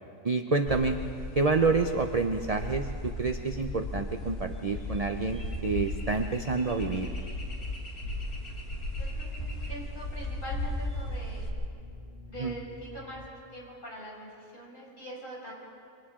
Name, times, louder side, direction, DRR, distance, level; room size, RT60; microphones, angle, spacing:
voice 1, 0.2-1.0 1.4-7.1 12.4-12.5, right 4 dB, 40° right, 5 dB, 0.6 m, -28 dB
sound 1, 0.7-11.5, left 1 dB, 90° left, 3.1 m, -36 dB
sound 2, 5.7-13.3, left 2 dB, 20° right, 1.6 m, -52 dB
voice 2, 9.0-11.5 12.3-13.2 13.5-15.6, right 1 dB, 35° left, -4 dB, 5.9 m, -43 dB
28.5 x 25.0 x 3.7 m, 2.5 s
omnidirectional pair, 1.5 m